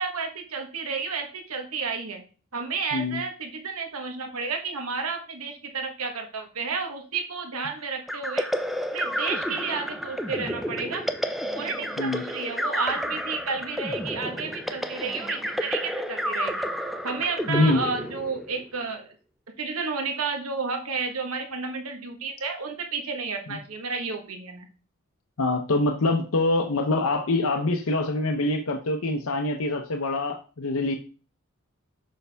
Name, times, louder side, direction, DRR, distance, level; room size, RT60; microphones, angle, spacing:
voice 1, 0.0-2.2 2.5-8.5 8.9-11.0 11.5-16.7 17.0-19.1 19.6-24.7, right 4 dB, 75° right, 4 dB, 1.2 m, -31 dB
voice 2, 2.9-3.2 12.0-12.2 17.5-17.8 23.5-23.6 25.4-30.9, left 2 dB, 70° left, 3 dB, 0.7 m, -25 dB
sound 1, 8.1-18.7, equal, ahead, 0.4 m, -31 dB
6.8 x 5.6 x 3.4 m, 0.37 s
head